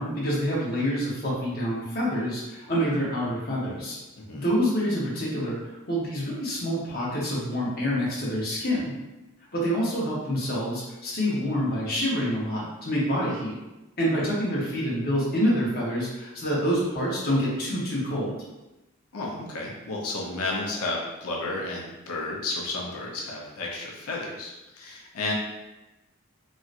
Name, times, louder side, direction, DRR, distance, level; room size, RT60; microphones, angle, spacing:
voice 1, 0.0-4.0 4.3-5.6 5.9-8.9 9.5-13.6 14.0-18.4, equal, 45° left, -5 dB, 0.9 m, -27 dB
voice 2, 4.2-4.5 19.1-25.3, left 2 dB, 85° left, -2 dB, 0.6 m, -32 dB
3.0 x 2.8 x 2.5 m, 1.0 s
head